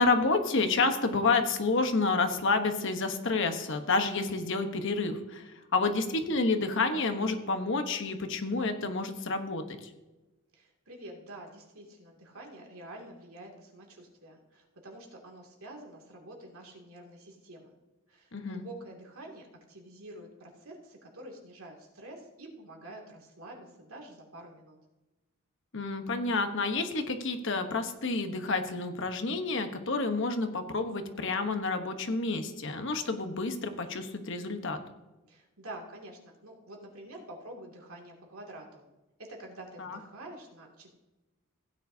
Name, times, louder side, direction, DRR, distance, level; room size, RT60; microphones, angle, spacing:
voice 1, 0.0-5.4 5.7-9.6 18.3-18.6 25.7-34.8 39.8-40.0, left 3 dB, 60° left, 7 dB, 1.1 m, -29 dB
voice 2, 10.5-17.7 18.1-24.8 35.3-38.8 39.2-40.9, right 1 dB, 80° right, 0 dB, 2.5 m, -47 dB
16.0 x 9.5 x 2.8 m, 1.1 s
head